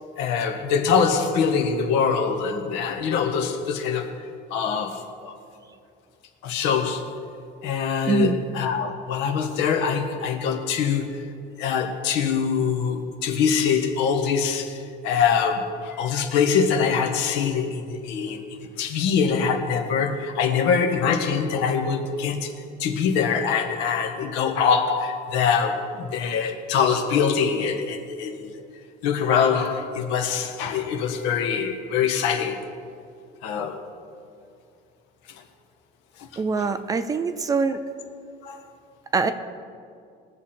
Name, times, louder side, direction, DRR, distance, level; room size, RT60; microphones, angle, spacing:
voice 1, 0.2-5.3 6.4-7.2 7.6-11.3 11.6-22.5 22.8-28.5 29.0-32.7 33.4-33.8 36.2-36.3 36.6-36.7 38.4-38.7, left 6 dB, 75° left, 1.5 m, -24 dB
voice 2, 36.4-37.8 39.1-39.3, right 5 dB, 20° right, 0.4 m, -23 dB
21.0 x 7.2 x 4.4 m
cardioid pair, 165°, 19 cm